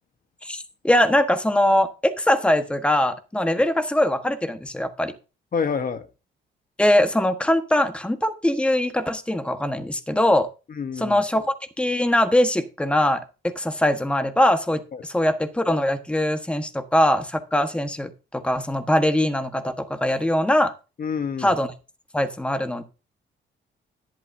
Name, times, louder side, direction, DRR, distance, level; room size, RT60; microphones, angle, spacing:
voice 1, 0.4-5.1 6.8-10.5 11.0-20.7 21.4-21.7 22.1-22.8, left 1 dB, 5° left, 1.4 m, -22 dB
voice 2, 5.5-6.1 10.7-11.2 14.9-15.0 21.0-21.5, left 6 dB, 45° left, 1.2 m, -27 dB
12.0 x 11.0 x 2.7 m
cardioid pair, 90°, 20 cm